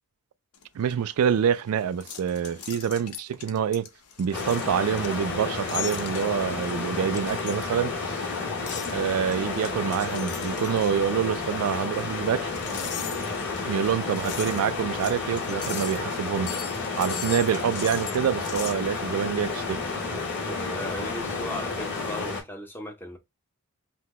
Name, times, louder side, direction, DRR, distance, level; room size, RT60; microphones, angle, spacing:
sound 1, 0.5-18.8, left 8 dB, 90° left, 0.8 m, -40 dB
voice 1, 0.7-3.9 4.2-8.3 8.9-12.5 13.7-16.6 17.0-19.8, right 8 dB, 75° right, 0.3 m, -26 dB
sound 2, 4.3-22.4, left 4 dB, 50° left, 2.3 m, -31 dB
voice 2, 8.5-8.8 20.4-23.2, equal, 10° left, 0.7 m, -37 dB
5.8 x 2.2 x 3.0 m
head